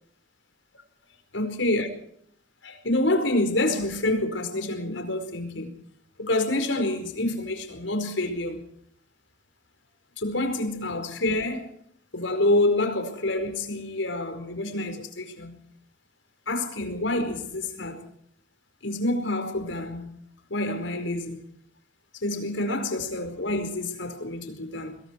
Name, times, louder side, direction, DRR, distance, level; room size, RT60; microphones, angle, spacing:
voice 1, 1.3-1.9 2.6-5.7 6.2-8.6 10.2-11.7 12.1-15.6 16.5-18.0 18.8-20.1 20.5-21.5 22.1-25.0, left 1 dB, 75° left, 4.8 m, -27 dB
26.0 x 21.5 x 4.6 m
head